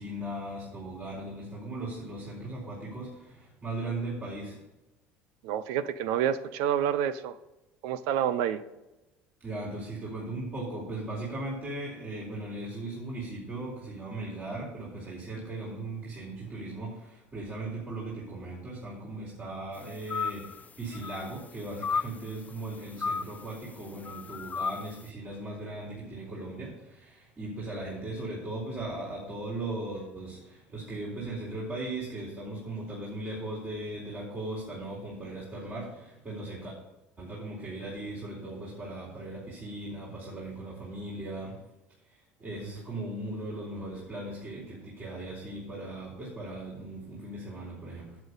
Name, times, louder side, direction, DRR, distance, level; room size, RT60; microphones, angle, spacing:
voice 1, 0.0-4.6 9.4-36.7 37.2-41.7 42.1-48.2, right 2 dB, 35° right, -6 dB, 4.1 m, -38 dB
voice 2, 5.4-7.4 7.8-8.6, right 9 dB, 70° right, 13 dB, 0.7 m, -28 dB
sound 1, 20.1-20.6 20.9-21.4 21.8-22.1 23.0-23.5 24.0-24.9, left 5 dB, 25° left, 0.3 m, -33 dB
8.3 x 7.9 x 5.5 m, 0.99 s
hypercardioid pair, 70°, 6 cm